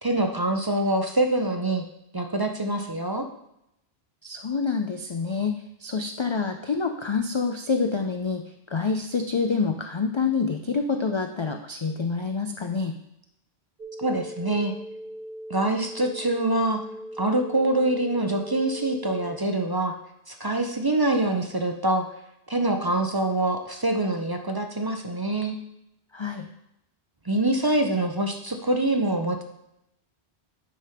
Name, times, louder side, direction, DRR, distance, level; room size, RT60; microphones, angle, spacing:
voice 1, 0.0-1.8 2.1-3.3 14.0-14.7 15.5-16.8 17.2-19.9 20.3-22.1 22.5-25.6 27.3-29.4, right 2 dB, 30° right, 4 dB, 0.5 m, -25 dB
voice 2, 4.2-8.4 8.7-12.9 26.1-26.5, left 5 dB, 50° left, 4 dB, 0.3 m, -27 dB
sound 1, 13.8-19.4, right 1 dB, 50° right, 1.1 m, -39 dB
9.3 x 3.4 x 5.6 m, 0.81 s
omnidirectional pair, 1.1 m